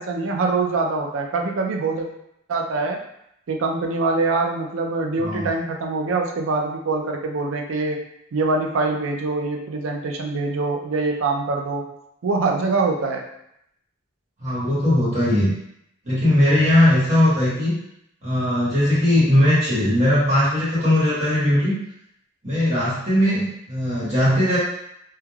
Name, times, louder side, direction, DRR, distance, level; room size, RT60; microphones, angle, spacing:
voice 1, 0.0-2.1 2.5-3.0 3.5-8.0 8.3-11.9 12.2-13.3, right 3 dB, 75° right, 2 dB, 0.4 m, -24 dB
voice 2, 5.2-5.5 14.4-15.5 16.0-17.8 18.2-21.7 22.4-24.6, left 1 dB, 35° right, -10 dB, 1.1 m, -19 dB
3.2 x 2.2 x 2.2 m, 0.77 s
head